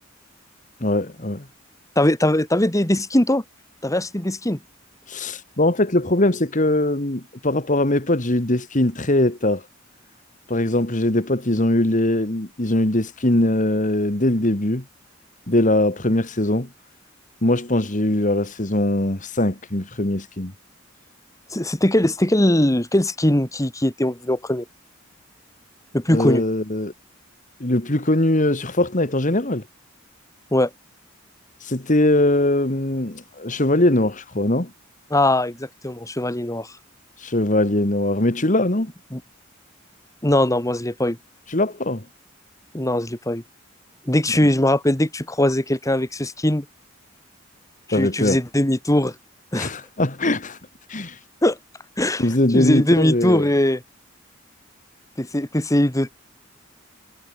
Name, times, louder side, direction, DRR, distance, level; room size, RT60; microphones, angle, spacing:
voice 1, 0.8-1.4 5.1-9.6 10.5-14.8 15.5-16.7 17.4-20.5 26.1-26.9 27.6-29.6 31.6-34.7 37.2-38.9 41.5-42.0 47.9-48.4 49.5-50.6 50.9-51.2 52.2-53.5, left 1 dB, 40° left, 2.3 m, -21 dB
voice 2, 2.0-3.4 3.8-4.6 21.5-24.7 25.9-26.4 30.5-30.7 35.1-36.7 39.1-39.2 40.2-41.2 42.7-43.4 44.1-46.7 47.9-49.1 49.5-49.7 51.4-51.6 52.0-53.8 55.2-56.1, left 1 dB, 15° left, 1.9 m, -20 dB
head